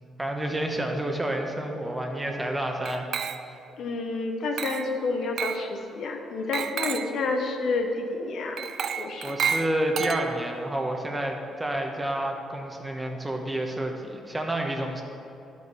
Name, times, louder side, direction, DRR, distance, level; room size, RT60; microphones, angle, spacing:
voice 1, 0.2-3.1 9.2-15.0, right 1 dB, 15° right, 2 dB, 1.2 m, -29 dB
Glass, 2.9-3.7 4.6-5.0 5.4-5.7 6.5-7.2 8.6-10.6, right 7 dB, 60° right, 0.4 m, -31 dB
voice 2, 3.8-8.7 9.0-9.4, left 3 dB, 70° left, 3 dB, 1.1 m, -29 dB
11.0 x 5.5 x 5.5 m, 2.8 s
cardioid pair, 90°, 0 cm